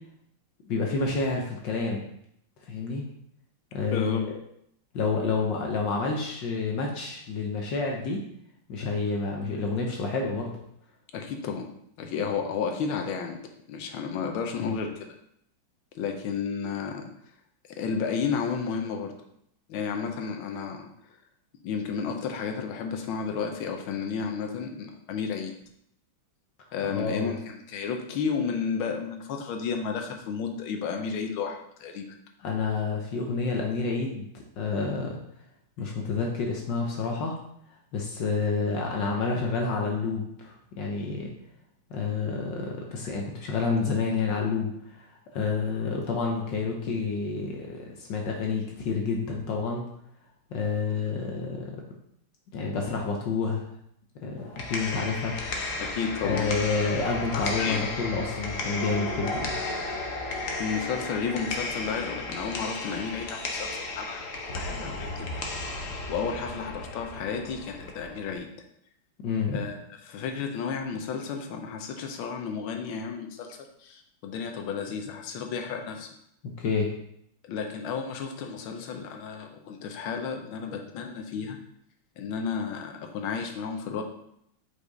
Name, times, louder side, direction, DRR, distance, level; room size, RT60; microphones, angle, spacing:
voice 1, 0.6-2.1 2.7-3.1 3.7-4.4 4.9-8.2 8.7-10.5 14.6-14.7 26.9-27.3 32.4-35.2 35.8-37.3 37.9-41.3 41.9-45.1 45.3-49.8 50.5-51.6 52.5-53.7 54.2-54.4 54.7-55.4 56.2-59.5 69.2-69.6 76.4-76.9, left 4 dB, 70° left, 0 dB, 1.5 m, -29 dB
voice 2, 3.9-4.2 11.1-11.7 12.0-13.4 13.7-15.2 15.9-17.1 17.7-19.1 19.7-20.9 21.6-25.5 26.7-32.0 55.8-56.5 57.3-57.8 60.6-65.3 65.6-68.5 69.5-69.8 70.1-76.1 77.4-81.6 82.2-84.0, left 6 dB, 90° left, 4 dB, 1.6 m, -32 dB
sound 1, 54.4-68.4, left 2 dB, 50° left, 1.0 m, -34 dB
5.2 x 5.0 x 4.0 m, 0.72 s
omnidirectional pair, 2.2 m